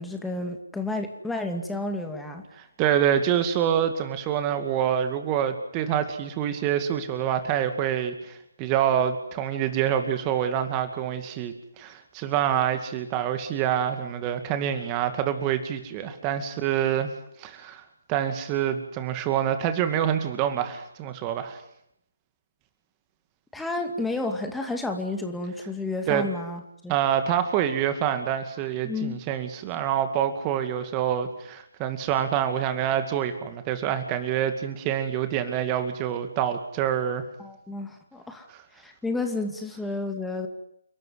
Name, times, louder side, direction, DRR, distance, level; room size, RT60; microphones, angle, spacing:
voice 1, 0.0-2.4 23.5-26.9 28.8-29.2 37.4-38.5 38.7-40.5, left 2 dB, 5° left, 4 dB, 2.4 m, -31 dB
voice 2, 2.6-17.1 17.4-17.8 18.1-21.6 26.1-26.3 26.9-37.3, right 9 dB, 20° right, 9 dB, 2.3 m, -26 dB
30.0 x 13.5 x 9.8 m, 0.76 s
figure-of-eight pair, 145°, 0 cm